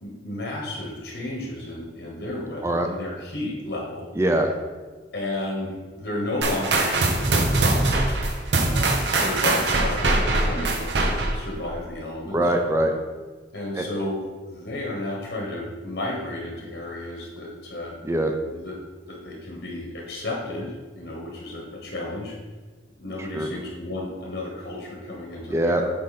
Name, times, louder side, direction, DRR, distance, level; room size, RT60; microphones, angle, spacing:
voice 1, 0.0-4.1 5.1-8.2 8.6-12.5 13.5-14.2 14.5-18.0 18.5-18.7 19.1-22.4 23.0-25.9, left 1 dB, 70° left, -2 dB, 1.2 m, -32 dB
voice 2, 4.2-4.5 12.3-12.9 13.8-13.9 18.0-18.3 23.2-23.5 25.5-25.8, right 1 dB, 15° right, 4 dB, 0.5 m, -22 dB
sound 1, 6.4-11.5, right 2 dB, 70° right, 0.8 m, -22 dB
7.9 x 3.8 x 4.2 m, 1.4 s
head